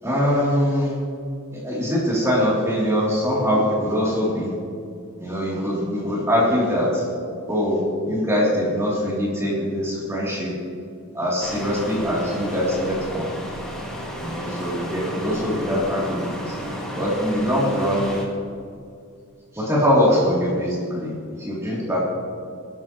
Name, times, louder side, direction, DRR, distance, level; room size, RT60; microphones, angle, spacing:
voice 1, 0.0-0.9 1.5-4.5 5.2-7.0 7.5-10.5 11.1-13.3 14.2-16.5 16.9-18.1 19.5-22.1, equal, 15° right, -6 dB, 3.2 m, -22 dB
sound 1, 11.4-18.3, equal, 5° left, 2.2 m, -32 dB
22.0 x 11.5 x 3.1 m, 2.3 s
head